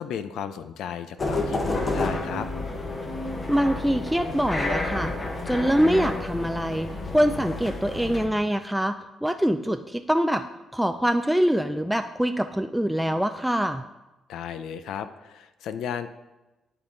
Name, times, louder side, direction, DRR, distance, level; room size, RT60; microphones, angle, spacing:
voice 1, 0.0-2.5 14.3-16.1, left 8 dB, 80° left, 11 dB, 0.4 m, -34 dB
sound 1, 1.2-8.3, left 2 dB, 35° left, 1.0 m, -30 dB
voice 2, 3.5-5.1 5.5-10.4 10.7-13.8, equal, 5° right, 7 dB, 0.3 m, -24 dB
11.0 x 3.7 x 3.9 m, 1.0 s
cardioid pair, 90°, 0 cm